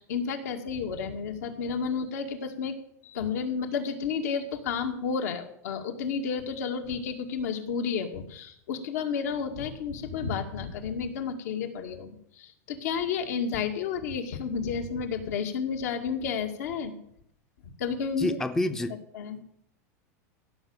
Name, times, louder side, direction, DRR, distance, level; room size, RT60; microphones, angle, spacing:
voice 1, 0.0-2.8 3.0-17.0 17.6-18.4 19.1-19.4, left 6 dB, 75° left, 5 dB, 2.2 m, -31 dB
voice 2, 18.2-19.0, left 1 dB, 5° left, 10 dB, 0.6 m, -28 dB
16.0 x 6.3 x 7.2 m, 0.70 s
supercardioid pair, 145°, 9 cm